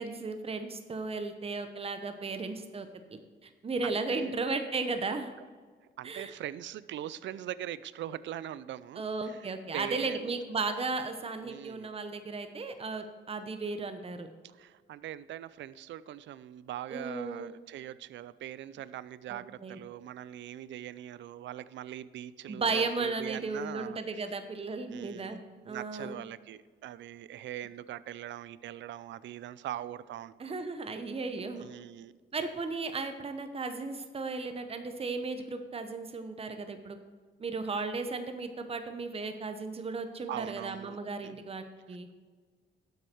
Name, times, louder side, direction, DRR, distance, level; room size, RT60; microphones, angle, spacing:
voice 1, 0.0-5.3 6.0-6.3 9.0-14.3 16.9-17.5 19.3-19.8 22.5-26.2 30.4-31.7 32.3-37.0 37.4-42.1, right 3 dB, 30° right, 8 dB, 1.0 m, -35 dB
voice 2, 3.8-4.4 6.0-10.3 11.4-11.9 14.4-24.0 24.9-25.4 25.6-30.6 31.6-32.1 40.3-41.0 41.2-41.4 41.9-42.1, right 12 dB, 70° right, 17 dB, 0.5 m, -42 dB
12.0 x 7.9 x 4.6 m, 1.5 s
cardioid pair, 90°, 20 cm